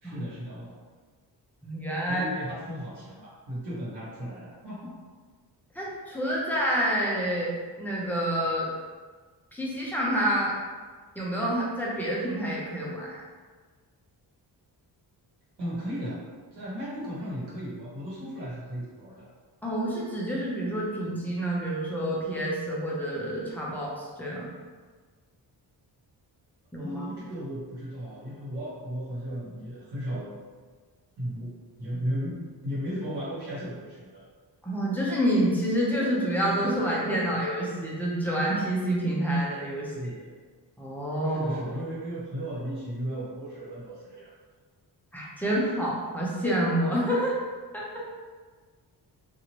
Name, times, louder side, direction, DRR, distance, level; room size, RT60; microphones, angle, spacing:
voice 1, 0.0-0.8 2.1-4.9 15.6-19.3 26.7-30.3 31.2-31.5 31.8-34.2 36.5-37.0 37.3-37.4 39.8-40.3 41.2-44.3, equal, 80° right, -8 dB, 1.2 m, -35 dB
voice 2, 1.6-2.3 5.7-7.5 7.8-8.7 9.5-10.6 11.2-13.2 19.6-24.5 26.7-27.1 34.6-39.9 40.8-41.6 45.1-47.3 47.7-48.0, right 1 dB, 5° left, -6 dB, 0.6 m, -28 dB
2.8 x 2.5 x 2.9 m, 1.5 s
wide cardioid pair, 140°, 40 cm